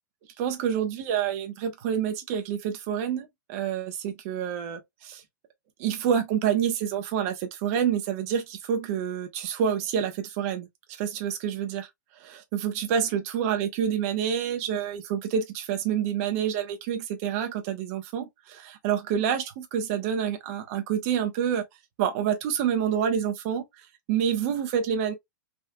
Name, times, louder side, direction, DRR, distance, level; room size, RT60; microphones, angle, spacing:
voice 1, 0.4-5.2 5.8-10.7 11.0-11.9 12.3-21.6 22.0-23.6 24.1-25.1, right 8 dB, 50° right, 1.0 m, -28 dB
3.7 x 2.5 x 2.3 m
hypercardioid pair, 115°, 10 cm